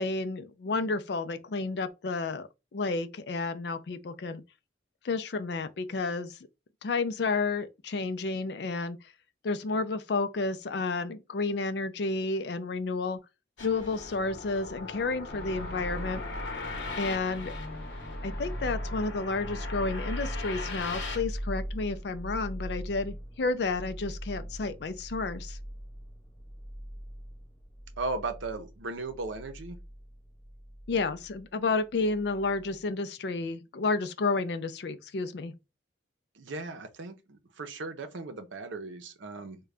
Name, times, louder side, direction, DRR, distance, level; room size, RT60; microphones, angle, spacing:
voice 1, 0.0-4.4 5.0-6.4 6.8-9.0 9.4-13.2 13.6-16.2 17.0-17.6 18.2-25.6 30.9-35.5, left 3 dB, 60° left, 0.4 m, -31 dB
sound 1, 13.6-21.2, left 3 dB, 90° left, 0.9 m, -39 dB
sound 2, 15.3-31.4 31.9-32.7, equal, 10° left, 0.9 m, -40 dB
voice 2, 28.0-29.8 36.3-39.6, right 3 dB, 80° right, 0.6 m, -37 dB
3.7 x 2.2 x 3.3 m
head